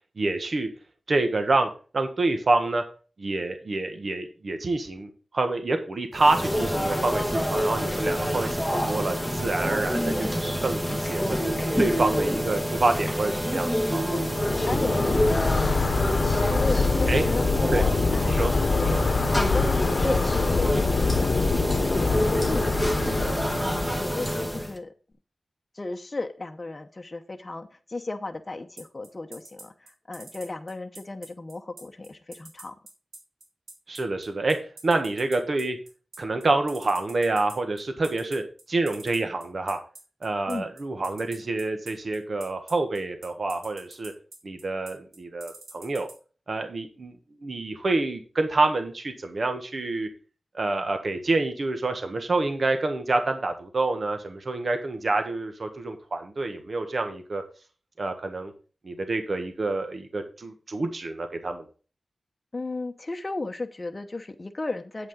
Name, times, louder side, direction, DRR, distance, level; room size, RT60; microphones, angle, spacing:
voice 1, 0.2-0.7 1.1-1.7 1.9-2.8 3.2-11.4 11.8-14.0 17.1-17.2 17.7-17.8 18.3-19.0 33.9-34.6 34.8-35.8 36.2-38.4 38.7-39.8 40.2-44.1 44.4-46.1 46.5-47.1 47.4-50.1 50.5-57.4 58.0-58.5 58.8-61.6, right 2 dB, 55° right, 7 dB, 1.5 m, -27 dB
sound 1, 6.1-24.8, equal, 10° right, 1.6 m, -27 dB
sound 2, 14.2-24.0, left 4 dB, 70° left, 0.9 m, -25 dB
voice 2, 14.6-17.8 18.1-18.4 18.8-18.9 19.3-23.1 23.6-24.9 25.7-32.7 40.5-40.7 62.5-65.1, left 2 dB, 30° left, 4 dB, 0.9 m, -35 dB
sound 3, 28.8-46.1, right 2 dB, 90° right, 3.5 m, -45 dB
8.5 x 8.4 x 3.8 m, 0.36 s
wide cardioid pair, 105°, 0 cm